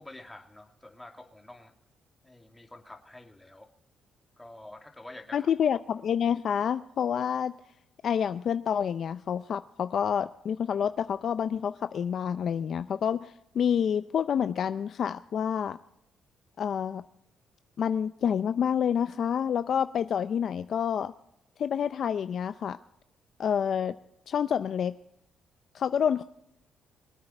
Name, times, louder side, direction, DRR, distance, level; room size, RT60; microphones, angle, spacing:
voice 1, 0.0-1.7 2.2-3.7 4.4-5.5, left 1 dB, 10° left, 3 dB, 2.4 m, -48 dB
voice 2, 5.3-7.5 8.0-15.8 16.6-17.0 17.8-21.1 21.6-22.8 23.4-23.9 24.3-24.9 25.7-26.2, left 8 dB, 60° left, 12 dB, 0.5 m, -28 dB
24.0 x 8.9 x 4.4 m, 0.79 s
cardioid pair, 90°, 0 cm